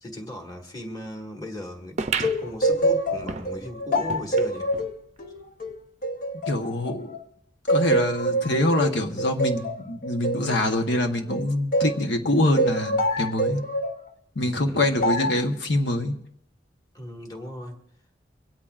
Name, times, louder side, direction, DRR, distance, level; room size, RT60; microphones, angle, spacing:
voice 1, 0.0-4.7 14.4-14.8 16.9-17.8, left 1 dB, 20° left, 1 dB, 1.8 m, -37 dB
sound 1, 2.0-4.9 5.4-5.5 5.7-5.8 6.6-6.7, right 5 dB, 35° right, 0.6 m, -34 dB
sound 2, 2.2-7.2 7.7-12.0 12.6-14.0 15.0-15.5, right 1 dB, 45° left, 0.7 m, -26 dB
voice 2, 6.5-7.2 7.7-13.6 14.3-16.2, left 1 dB, 70° left, 4 dB, 1.1 m, -25 dB
23.5 x 17.5 x 2.5 m, 0.72 s
head